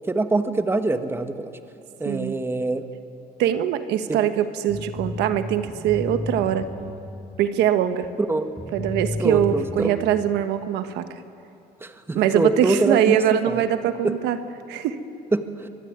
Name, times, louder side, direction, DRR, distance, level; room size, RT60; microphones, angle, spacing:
voice 1, 0.1-1.5 2.0-2.8 4.1-4.2 8.3-8.5 9.2-9.9 11.8-13.6 14.0-14.2 15.3-15.7, right 2 dB, 15° right, 8 dB, 1.4 m, -24 dB
voice 2, 2.0-2.4 3.4-6.7 7.4-8.1 8.7-11.2 12.1-14.4 14.7-15.0, right 10 dB, 85° right, 9 dB, 1.3 m, -22 dB
sound 1, 4.7-7.3 8.0-8.1 8.6-9.9, left 1 dB, 5° left, 3.0 m, -32 dB
24.0 x 23.5 x 9.5 m, 2.7 s
cardioid pair, 110°, 17 cm